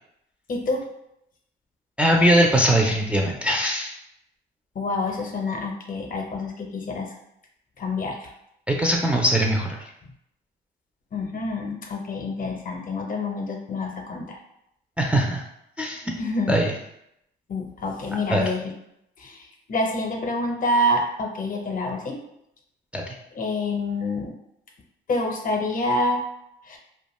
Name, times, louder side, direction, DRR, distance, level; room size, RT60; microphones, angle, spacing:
voice 1, 0.5-0.8 4.7-7.1 7.8-8.3 11.1-14.4 16.2-16.7 17.5-18.6 19.2-22.2 23.3-24.3 25.1-26.2 26.7-26.8, left 2 dB, 45° left, 2 dB, 0.6 m, -27 dB
voice 2, 2.0-3.9 8.7-9.8 15.0-15.4 15.8-16.1 16.5-16.7 18.3-18.4 22.9-23.0, right 1 dB, 5° right, -1 dB, 0.3 m, -21 dB
2.4 x 2.2 x 2.9 m, 0.79 s
cardioid pair, 90°, 20 cm